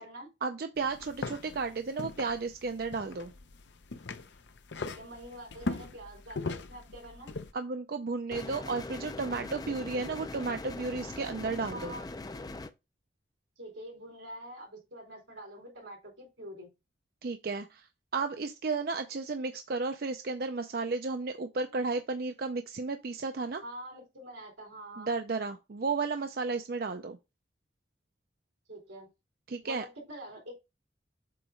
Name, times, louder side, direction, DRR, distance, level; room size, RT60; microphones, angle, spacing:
voice 1, 0.4-3.3 7.5-11.9 17.2-17.9 18.1-23.6 25.0-27.2 29.5-29.8, right 4 dB, 50° right, 0.4 m, -33 dB
sound 1, 0.8-7.5, left 3 dB, 75° left, 0.7 m, -40 dB
voice 2, 4.8-7.3 11.7-12.1 13.6-16.7 23.6-25.2 28.7-29.1 29.6-30.5, right 1 dB, 90° right, 3.8 m, -45 dB
sound 2, 8.3-12.7, left 2 dB, 20° left, 0.4 m, -41 dB
7.7 x 2.9 x 5.0 m
head